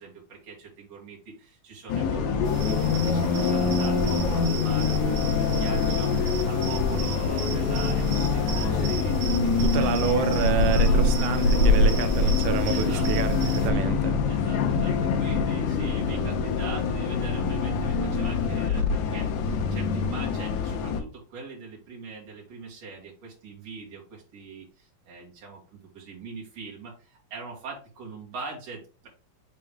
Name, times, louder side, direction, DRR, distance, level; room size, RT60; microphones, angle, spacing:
voice 1, 0.0-10.0 10.7-11.0 12.7-13.1 14.3-29.1, right 4 dB, 50° right, 3.1 m, -42 dB
Bus, 1.9-21.0, left 5 dB, 70° left, 1.9 m, -25 dB
sound 1, 2.4-13.7, right 1 dB, 70° right, 1.9 m, -27 dB
voice 2, 9.6-14.2, right 8 dB, 85° right, 1.7 m, -28 dB
6.9 x 3.7 x 3.6 m
omnidirectional pair, 4.2 m